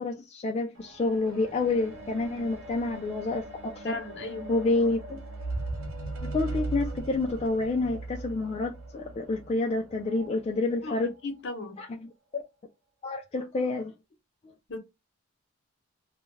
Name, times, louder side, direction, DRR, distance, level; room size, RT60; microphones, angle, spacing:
voice 1, 0.0-4.0 4.5-5.2 6.2-11.1 11.8-12.4 13.0-13.9, left 3 dB, 30° left, 0.3 m, -29 dB
sound 1, 0.8-10.3 11.1-11.2, right 2 dB, 90° right, 0.8 m, -39 dB
voice 2, 3.8-4.5 10.8-11.0 11.2-11.8 14.7-14.8, left 3 dB, 60° left, 0.8 m, -36 dB
2.3 x 2.2 x 3.1 m
head